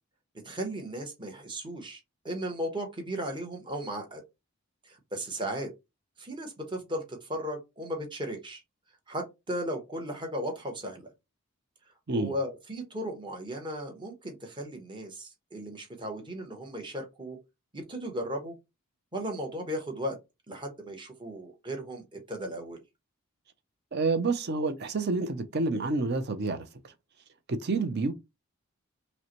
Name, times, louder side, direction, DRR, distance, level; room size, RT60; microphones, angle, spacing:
voice 1, 0.4-2.0 2.2-4.2 4.8-5.7 6.2-8.6 9.1-11.1 12.1-17.4 17.7-18.6 19.1-20.2 20.5-22.8, equal, 20° right, 1.0 m, -36 dB
voice 2, 23.9-26.9 27.5-28.1, right 3 dB, 50° right, 0.6 m, -29 dB
5.3 x 2.2 x 3.0 m
head